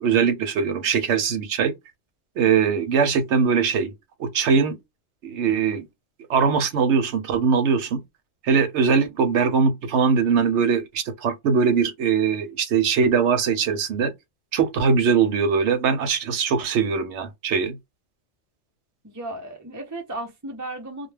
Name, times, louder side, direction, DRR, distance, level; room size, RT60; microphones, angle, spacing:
voice 1, 0.0-1.7 2.4-3.9 4.2-4.8 5.2-5.8 6.3-8.0 8.4-14.1 14.5-17.8, right 6 dB, 70° right, 0.9 m, -21 dB
voice 2, 19.0-21.1, right 2 dB, 25° right, 0.4 m, -35 dB
2.2 x 2.2 x 3.2 m
omnidirectional pair, 1.3 m